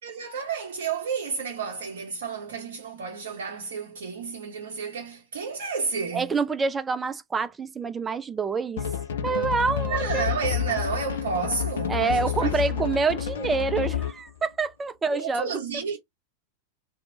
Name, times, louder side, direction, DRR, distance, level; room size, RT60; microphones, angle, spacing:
voice 1, 0.0-6.3 9.9-12.8 15.1-16.0, right 5 dB, 60° right, 0.6 m, -31 dB
voice 2, 6.1-8.8 9.2-10.3 11.9-15.6, right 4 dB, 15° right, 0.4 m, -27 dB
sound 1, 8.8-14.3, left 9 dB, 60° left, 0.5 m, -29 dB
2.9 x 2.1 x 3.6 m
figure-of-eight pair, 90°, 0 cm